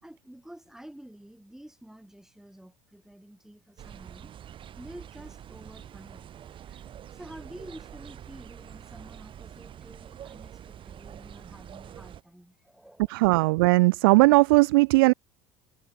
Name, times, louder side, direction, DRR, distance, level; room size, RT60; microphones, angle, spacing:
voice 1, 0.0-4.3 4.7-6.3 7.1-13.2, right 1 dB, 5° right, 5.3 m, -49 dB
sound 1, 3.8-12.2, right 10 dB, 45° right, 2.9 m, -46 dB
voice 2, 13.1-15.1, right 23 dB, 75° right, 0.4 m, -18 dB
hypercardioid pair, 75°, 12 cm